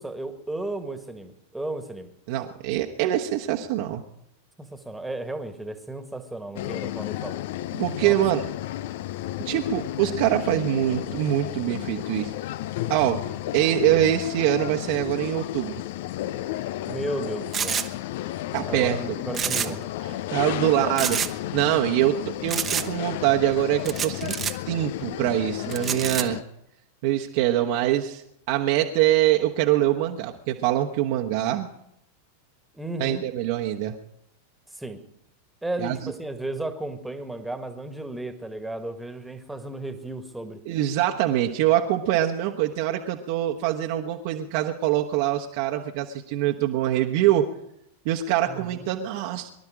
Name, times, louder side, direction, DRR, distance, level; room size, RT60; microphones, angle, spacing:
voice 1, 0.0-2.1 4.6-7.4 8.0-8.2 16.9-17.8 18.6-19.8 20.6-21.0 32.7-33.2 34.7-35.0 35.6-40.6 48.5-48.9, right 2 dB, 5° right, 8 dB, 1.8 m, -34 dB
voice 2, 2.3-4.0 7.7-8.4 9.4-12.3 12.9-13.2 13.5-15.7 18.5-19.0 19.6-19.7 20.0-21.2 21.5-24.3 24.7-26.4 27.0-28.2 28.5-31.7 33.0-33.9 35.8-36.0 40.6-47.4 48.0-49.5, right 12 dB, 50° right, 2 dB, 1.2 m, -24 dB
sound 1, 6.6-26.4, left 14 dB, 50° left, 0.5 m, -33 dB
sound 2, 17.5-17.9 19.3-19.9 20.1-20.2 21.0-21.3 22.5-22.9 23.8-24.5 25.7-26.2, right 8 dB, 25° right, 1.1 m, -27 dB
23.5 x 12.0 x 5.0 m, 0.78 s
figure-of-eight pair, 90°, 0 cm